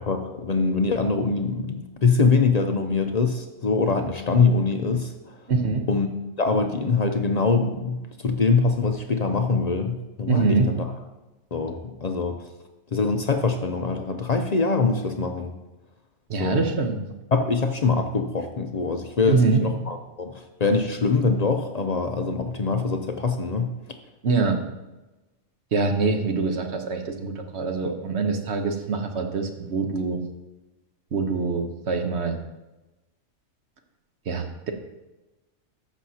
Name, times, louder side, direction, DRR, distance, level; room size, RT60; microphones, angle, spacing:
voice 1, 0.0-5.1 5.9-6.1 6.4-10.8 11.5-12.4 12.9-15.5 16.4-16.6 17.3-23.7, left 4 dB, 50° left, 5 dB, 0.4 m, -23 dB
voice 2, 5.5-5.9 10.3-10.7 16.3-17.0 19.2-19.6 24.2-24.6 25.7-30.2 31.1-32.4 34.3-34.7, right 4 dB, 60° right, 5 dB, 1.1 m, -24 dB
13.5 x 6.3 x 2.8 m, 1.0 s
omnidirectional pair, 1.4 m